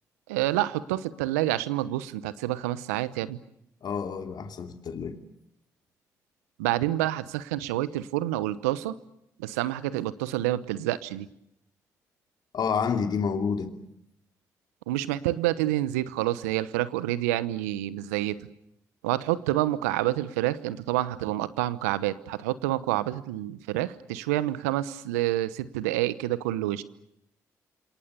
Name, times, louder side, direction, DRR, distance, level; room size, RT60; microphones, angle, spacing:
voice 1, 0.3-3.4 6.6-9.0 9.4-11.3 14.9-18.5 19.0-26.8, right 15 dB, 85° right, 1.0 m, -28 dB
voice 2, 3.8-5.2 12.5-13.7, left 6 dB, 55° left, 2.9 m, -29 dB
28.5 x 27.5 x 6.8 m
hypercardioid pair, 45°, 8 cm